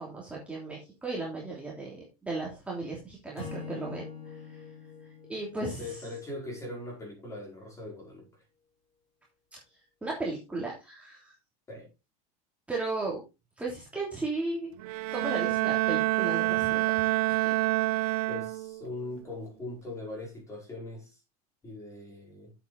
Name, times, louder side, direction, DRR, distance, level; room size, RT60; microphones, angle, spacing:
voice 1, 0.0-4.6 5.3-6.0 9.5-9.6 10.0-11.3 12.7-13.2 13.6-14.7 15.1-17.1 17.4-17.5, right 3 dB, 5° right, 3.0 m, -35 dB
Acoustic guitar / Strum, 3.3-6.7, left 5 dB, 35° left, 6.1 m, -44 dB
voice 2, 5.6-8.3 11.7-11.9 18.3-21.2 21.6-22.5, left 2 dB, 15° left, 5.1 m, -41 dB
Bowed string instrument, 14.8-18.9, right 21 dB, 75° right, 0.6 m, -27 dB
8.3 x 8.3 x 4.0 m
supercardioid pair, 140°, 20 cm